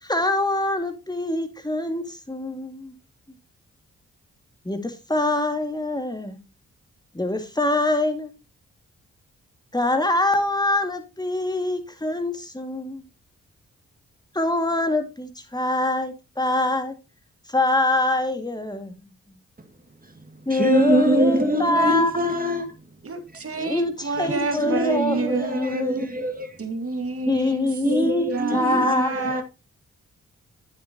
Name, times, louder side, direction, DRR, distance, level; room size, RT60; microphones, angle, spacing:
voice 1, 0.0-3.0 3.3-3.4 4.6-6.4 7.1-8.3 9.7-13.1 14.3-16.9 17.5-19.1 20.5-22.1 23.6-26.2 27.3-29.1, left 2 dB, 15° left, 2.1 m, -24 dB
voice 2, 20.5-22.7 24.5-26.6 27.8-29.4, right 1 dB, 25° right, 2.1 m, -24 dB
voice 3, 23.0-25.9 26.6-27.7 28.3-29.4, right 3 dB, 45° right, 2.1 m, -28 dB
9.3 x 7.5 x 2.9 m
supercardioid pair, 50°, 31 cm